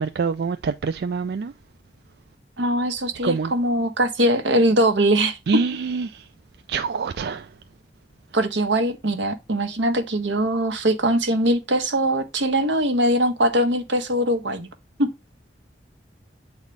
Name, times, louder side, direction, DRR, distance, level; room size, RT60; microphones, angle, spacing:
voice 1, 0.0-1.5 3.2-3.5 5.5-6.2 6.7-7.5, right 5 dB, 60° right, 0.3 m, -25 dB
voice 2, 2.6-5.4 8.3-14.7 15.0-15.1, right 1 dB, 85° right, 1.2 m, -21 dB
8.2 x 4.1 x 3.2 m
head